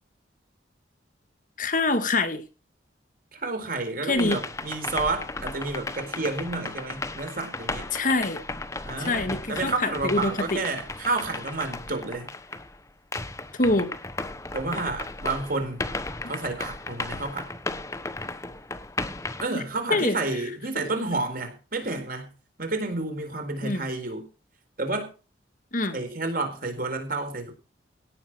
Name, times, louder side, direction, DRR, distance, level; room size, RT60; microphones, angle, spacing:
voice 1, 1.6-2.4 4.1-4.4 7.9-8.4 9.1-10.6 13.6-13.9 19.9-20.2 23.6-23.8 25.7-26.0, left 2 dB, 45° left, 1.8 m, -25 dB
voice 2, 3.3-7.9 8.8-12.3 14.5-15.9 16.3-17.5 19.4-22.3 22.6-24.3 24.8-25.1 25.9-27.5, right 3 dB, 50° right, 4.2 m, -30 dB
sound 1, 4.1-12.8 13.1-19.5, left 2 dB, 15° left, 1.0 m, -35 dB
17.5 x 7.4 x 6.1 m
head